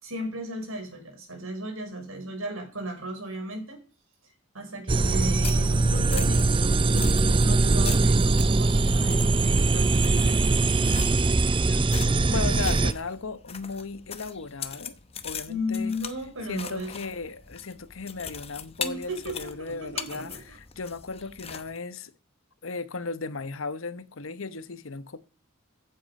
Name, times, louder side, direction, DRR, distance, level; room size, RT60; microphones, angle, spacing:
voice 1, 0.0-3.8 4.5-10.4 15.5-16.9 18.8-20.4, equal, 90° right, 5.1 m, -35 dB
sound 1, 4.9-12.9, right 3 dB, 25° right, 0.5 m, -22 dB
sound 2, 5.1-21.8, left 7 dB, 30° left, 0.9 m, -41 dB
voice 2, 11.4-15.0 15.2-16.0 16.5-22.1 22.6-25.2, left 4 dB, 75° left, 1.0 m, -36 dB
15.0 x 7.8 x 5.4 m
head